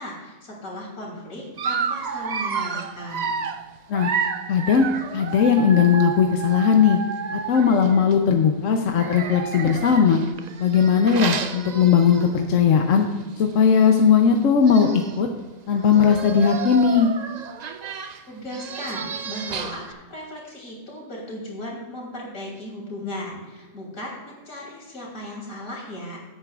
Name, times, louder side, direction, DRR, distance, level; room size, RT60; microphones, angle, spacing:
voice 1, 0.0-3.4 18.3-26.2, left 1 dB, 90° left, -3 dB, 3.5 m, -36 dB
Dog, 1.6-8.2 8.9-12.5 12.9-13.1 13.4-13.5 14.4-14.5 14.6-15.2 15.8-19.9, right 6 dB, 60° right, 0.4 m, -31 dB
voice 2, 4.5-4.9 5.1-7.0 7.3-10.2 10.6-13.1 13.4-15.3 15.7-17.1, left 7 dB, 70° left, 4 dB, 1.1 m, -18 dB
16.5 x 8.8 x 2.4 m, 1.3 s
omnidirectional pair, 1.4 m